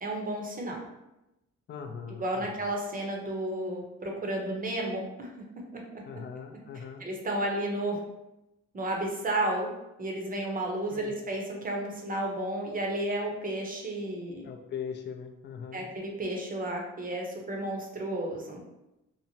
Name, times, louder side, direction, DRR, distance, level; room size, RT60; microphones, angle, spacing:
voice 1, 0.0-0.8 2.2-5.3 5.7-6.0 7.0-8.0 8.7-9.7 10.0-14.5 15.7-18.6, right 1 dB, 30° right, 0 dB, 0.7 m, -32 dB
voice 2, 1.7-2.6 6.1-7.0 10.9-11.2 14.4-15.9, left 7 dB, 35° left, 4 dB, 0.4 m, -40 dB
2.8 x 2.0 x 2.7 m, 0.93 s
cardioid pair, 90°, 30 cm